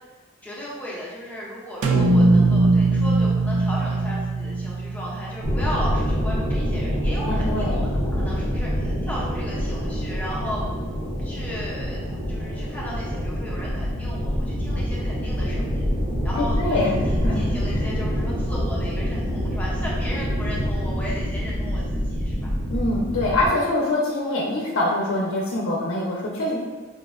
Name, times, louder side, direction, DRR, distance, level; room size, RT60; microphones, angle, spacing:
voice 1, 0.4-10.9 11.2-15.9 16.2-22.5, equal, 10° left, -6 dB, 0.4 m, -35 dB
sound 1, 1.8-6.0, right 2 dB, 85° right, 0.4 m, -20 dB
sound 2, 5.4-23.5, equal, 55° right, 0.7 m, -26 dB
voice 2, 7.2-7.8 16.3-17.5 22.7-26.6, left 2 dB, 70° left, -3 dB, 0.5 m, -24 dB
4.8 x 2.1 x 2.3 m, 1.3 s
head